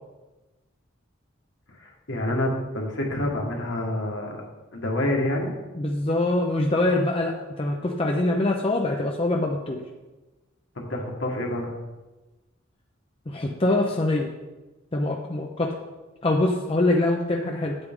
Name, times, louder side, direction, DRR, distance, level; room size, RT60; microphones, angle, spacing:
voice 1, 1.8-4.4 4.7-5.5 10.8-11.7, left 1 dB, 65° left, 0 dB, 1.7 m, -27 dB
voice 2, 5.7-9.8 13.3-14.3 14.9-15.8 16.2-17.8, left 2 dB, 25° left, 0 dB, 0.6 m, -24 dB
9.4 x 8.0 x 3.7 m, 1.1 s
head